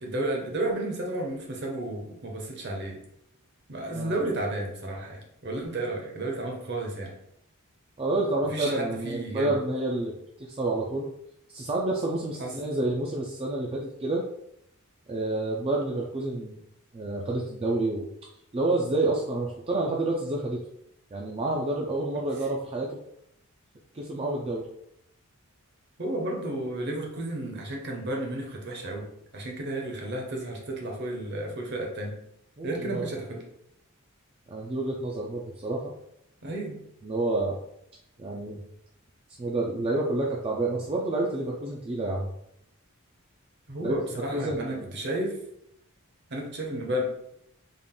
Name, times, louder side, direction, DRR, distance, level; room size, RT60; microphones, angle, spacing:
voice 1, 0.0-3.0 3.7-7.1 8.5-9.5 12.4-12.5 26.0-29.1 29.3-32.2 32.6-33.4 36.4-36.8 43.7-45.3 46.3-47.0, right 1 dB, 50° right, 0 dB, 0.9 m, -32 dB
voice 2, 8.0-10.1 10.4-11.1 11.5-14.2 15.1-16.6 16.9-18.0 18.5-20.6 21.1-23.0 23.9-24.6 32.6-33.1 34.5-35.9 37.0-37.6 38.2-38.6 39.4-42.3 43.8-44.9, right 2 dB, 25° right, -2 dB, 0.4 m, -29 dB
3.6 x 2.4 x 3.7 m, 0.75 s
head